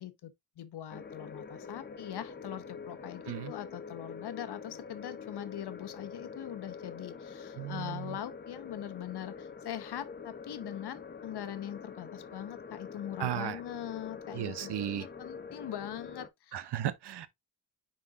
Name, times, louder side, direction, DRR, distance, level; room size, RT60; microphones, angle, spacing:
voice 1, 0.0-16.6, left 11 dB, 80° left, 1.0 m, -42 dB
sound 1, 0.9-16.3, left 5 dB, 25° left, 0.7 m, -45 dB
voice 2, 7.6-8.2 13.2-13.6 14.3-15.1 16.5-17.3, right 11 dB, 85° right, 0.8 m, -35 dB
9.6 x 4.2 x 2.5 m
wide cardioid pair, 145°, 39 cm